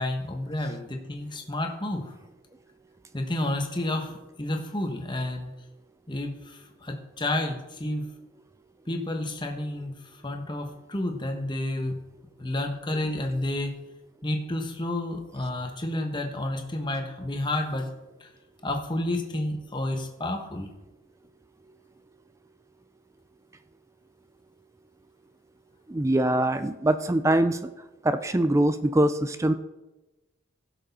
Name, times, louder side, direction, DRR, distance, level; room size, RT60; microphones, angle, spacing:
voice 1, 0.0-2.1 3.1-4.1 4.4-5.5 6.1-8.1 8.9-9.9 10.2-12.0 12.4-13.7 14.2-17.9 18.2-18.3 18.6-20.7, left 1 dB, 20° left, 3 dB, 1.2 m, -30 dB
voice 2, 25.9-27.6 28.0-29.5, right 1 dB, 15° right, 11 dB, 0.3 m, -23 dB
16.0 x 6.4 x 4.1 m, 1.0 s
head